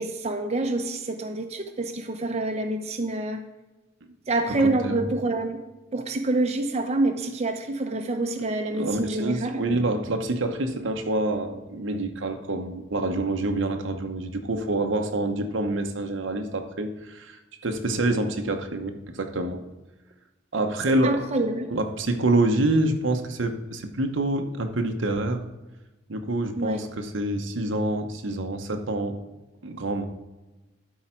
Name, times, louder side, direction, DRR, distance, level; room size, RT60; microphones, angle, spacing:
voice 1, 0.0-3.4 4.3-5.6 5.9-9.5 21.0-21.7 26.6-26.8, right 2 dB, 35° right, 4 dB, 0.8 m, -27 dB
voice 2, 4.6-5.0 8.7-19.6 20.5-21.2 21.7-25.4 26.1-29.2 29.6-30.0, right 2 dB, 75° right, 6 dB, 0.9 m, -27 dB
12.0 x 4.8 x 4.5 m, 1.1 s
head